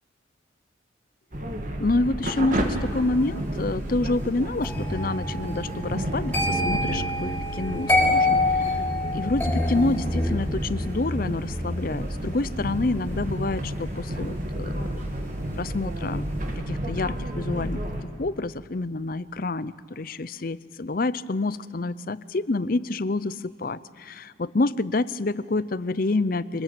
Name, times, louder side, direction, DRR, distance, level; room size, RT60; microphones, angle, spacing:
sound 1, 1.3-18.0, right 1 dB, 45° right, 2.5 m, -31 dB
voice 1, 1.8-8.8 9.1-14.9 15.5-16.2 16.7-26.6, left 2 dB, 50° left, 17 dB, 0.6 m, -28 dB
sound 2, 4.6-15.6 15.9-16.3, left 2 dB, 10° left, 4.2 m, -28 dB
25.5 x 20.0 x 9.0 m, 2.2 s
head